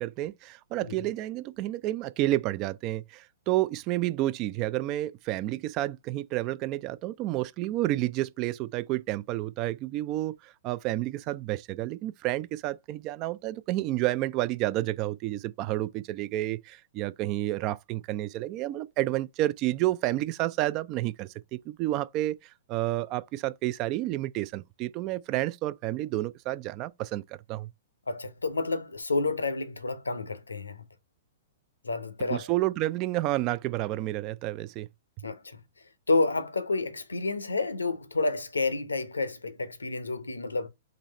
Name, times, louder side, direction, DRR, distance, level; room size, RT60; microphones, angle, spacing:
voice 1, 0.0-22.4 22.7-27.7 32.3-34.9, right 16 dB, 35° right, 0.3 m, -30 dB
voice 2, 28.1-30.8 31.8-32.5 35.2-35.6 36.1-40.7, left 3 dB, 85° left, 0.7 m, -30 dB
3.9 x 3.2 x 4.2 m
figure-of-eight pair, 115°, 0 cm